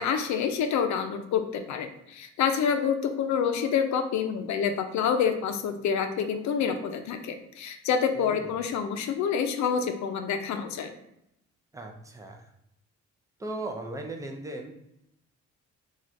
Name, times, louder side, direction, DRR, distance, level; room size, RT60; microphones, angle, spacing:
voice 1, 0.0-10.9, left 7 dB, 70° left, 7 dB, 0.5 m, -27 dB
voice 2, 8.1-8.5 11.7-12.4 13.4-14.7, right 2 dB, 10° right, 2 dB, 0.5 m, -37 dB
3.2 x 2.4 x 2.6 m, 0.81 s
cardioid pair, 90°, 30 cm